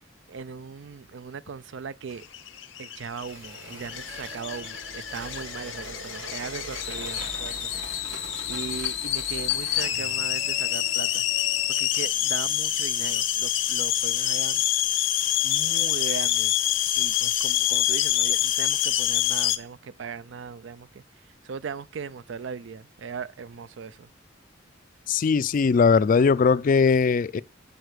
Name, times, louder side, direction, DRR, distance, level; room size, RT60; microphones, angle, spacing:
voice 1, 0.3-2.2 2.8-7.7 8.5-11.2 11.7-14.7 15.4-16.6 17.0-21.0 21.4-24.1, right 6 dB, 70° right, 0.4 m, -38 dB
sound 1, 2.2-19.6, left 12 dB, 80° left, 0.8 m, -26 dB
sound 2, 3.1-10.2, right 2 dB, 85° right, 4.2 m, -42 dB
sound 3, 3.6-7.8 9.9-14.9, right 4 dB, 35° right, 1.4 m, -53 dB
voice 2, 25.1-27.4, left 5 dB, 45° left, 0.3 m, -20 dB
9.3 x 4.2 x 6.6 m
head